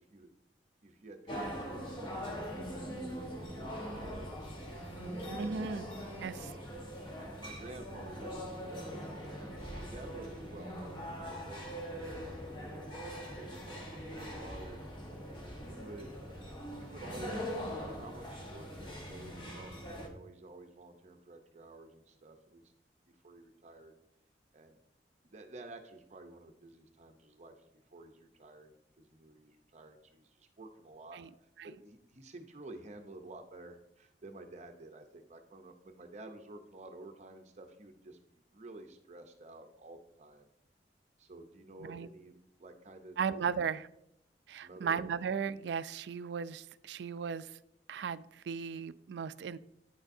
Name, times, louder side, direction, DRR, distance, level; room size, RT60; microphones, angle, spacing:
voice 1, 0.8-1.9 2.2-4.5 5.3-5.8 6.1-6.3 7.1-14.8 15.6-16.2 16.7-22.6 23.0-23.9 24.5-24.8 25.2-27.5 27.9-40.5 41.2-43.5 44.6-45.0, right 2 dB, 40° right, 5 dB, 0.7 m, -51 dB
sound 1, 1.3-20.1, equal, 30° left, 1.3 m, -42 dB
voice 2, 5.3-5.9 6.2-6.5 31.1-31.3 31.6-31.7 41.8-42.1 43.2-43.9 44.5-47.6 47.9-49.6, right 6 dB, 70° right, 15 dB, 0.3 m, -36 dB
8.9 x 6.5 x 2.6 m, 0.79 s
head